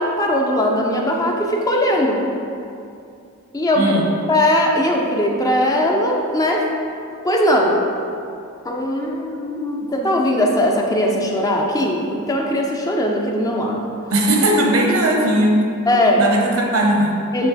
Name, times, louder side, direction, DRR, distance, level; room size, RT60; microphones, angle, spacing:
voice 1, 0.0-2.2 3.5-4.0 4.3-6.7 7.2-7.8 8.6-13.9 15.9-16.2 17.3-17.5, left 1 dB, 15° left, 0 dB, 0.5 m, -19 dB
voice 2, 3.8-4.1 14.1-15.6 16.2-17.2, right 1 dB, 70° right, 0 dB, 0.9 m, -17 dB
7.6 x 3.2 x 4.0 m, 2.6 s
head